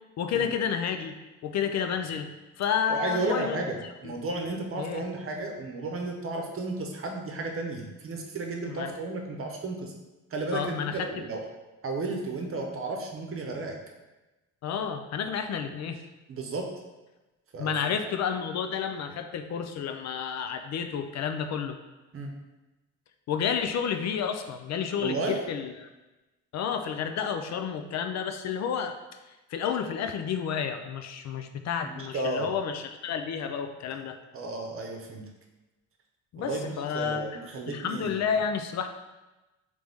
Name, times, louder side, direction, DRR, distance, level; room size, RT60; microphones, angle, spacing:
voice 1, 0.2-1.2 1.4-2.3 2.6-4.2 4.8-5.1 8.6-8.9 10.5-11.2 14.6-16.0 17.6-21.8 23.3-25.9 26.5-29.0 29.5-34.2 36.3-38.9, left 7 dB, 60° left, 7 dB, 0.5 m, -31 dB
voice 2, 2.9-9.9 10.3-11.4 11.8-13.8 16.3-16.7 17.5-17.7 22.1-22.3 25.0-25.4 31.9-32.5 34.3-35.2 36.4-38.1, right 2 dB, 45° right, 2 dB, 0.8 m, -33 dB
3.8 x 3.3 x 3.5 m, 1.1 s
cardioid pair, 90°, 30 cm